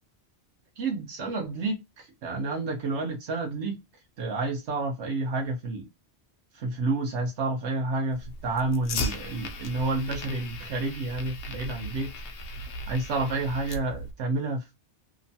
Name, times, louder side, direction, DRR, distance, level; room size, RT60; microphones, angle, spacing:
voice 1, 0.8-3.8 4.2-5.9 6.5-12.1 12.9-14.8, right 3 dB, 85° right, 1.0 m, -30 dB
Fire, 8.1-14.1, left 1 dB, 85° left, 0.9 m, -37 dB
2.9 x 2.1 x 2.6 m
omnidirectional pair, 1.1 m